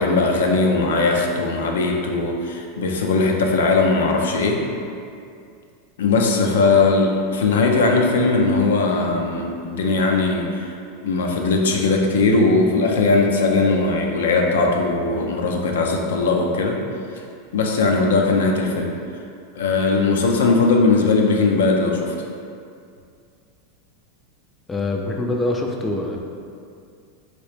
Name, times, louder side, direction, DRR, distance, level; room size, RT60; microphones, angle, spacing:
voice 1, 0.0-4.6 6.0-10.7 11.0-16.8 17.5-18.9 19.5-22.1, left 3 dB, 90° left, 1 dB, 0.4 m, -19 dB
voice 2, 24.7-26.2, left 2 dB, 15° left, 0 dB, 0.3 m, -24 dB
3.0 x 2.8 x 3.2 m, 2.4 s
supercardioid pair, 125°, 0 cm